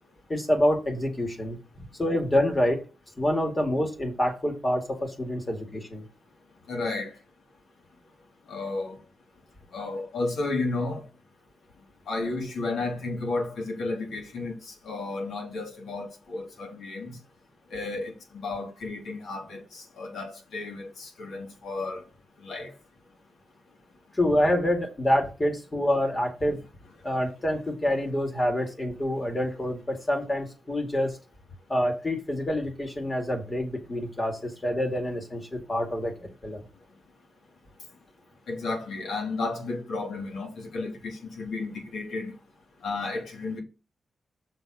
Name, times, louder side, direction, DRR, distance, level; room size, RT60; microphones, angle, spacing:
voice 1, 0.3-1.6 2.0-2.8 3.2-6.0 24.1-26.6 27.0-31.2 31.7-36.6, left 1 dB, 25° left, 2.2 m, -27 dB
voice 2, 6.7-7.1 8.5-9.0 9.7-11.0 12.1-17.2 17.7-22.0 22.4-22.7 38.5-42.3 42.8-43.6, left 3 dB, 90° left, 2.6 m, -33 dB
6.6 x 3.8 x 6.1 m
wide cardioid pair, 110°, 0 cm